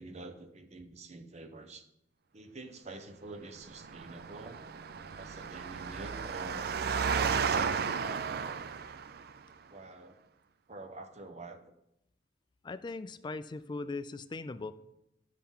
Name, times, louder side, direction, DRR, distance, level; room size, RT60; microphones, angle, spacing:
voice 1, 0.0-1.9 2.3-4.6 5.1-7.2 7.5-8.6 9.7-10.2 10.7-11.7, right 2 dB, 40° right, 7 dB, 0.8 m, -47 dB
Engine, 3.7-9.3, right 6 dB, 60° right, 0.4 m, -33 dB
voice 2, 12.6-14.7, left 3 dB, 25° left, 13 dB, 0.3 m, -39 dB
12.0 x 5.7 x 3.7 m, 0.83 s
head